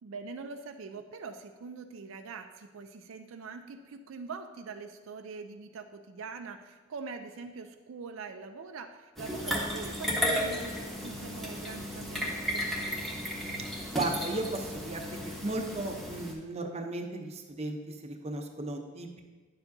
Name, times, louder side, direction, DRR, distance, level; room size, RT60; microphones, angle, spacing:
voice 1, 0.0-13.0, right 4 dB, 75° right, 6 dB, 0.4 m, -43 dB
sound 1, 9.2-16.3, equal, ahead, 1.1 m, -34 dB
voice 2, 13.9-15.0 15.4-17.8 18.0-19.2, right 2 dB, 30° right, 3 dB, 0.7 m, -35 dB
9.4 x 7.0 x 2.6 m, 1.3 s
head